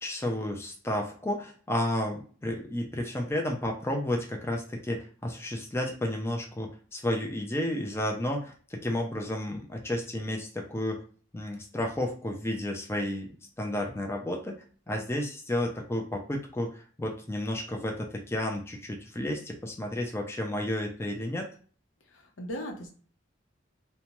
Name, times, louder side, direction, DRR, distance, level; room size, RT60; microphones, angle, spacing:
voice 1, 0.0-11.0 11.3-13.3 13.6-14.6 14.9-21.5, left 1 dB, 15° left, 1 dB, 0.4 m, -32 dB
voice 2, 22.1-22.9, equal, 80° left, 2 dB, 0.7 m, -38 dB
2.7 x 2.1 x 3.0 m, 0.42 s
head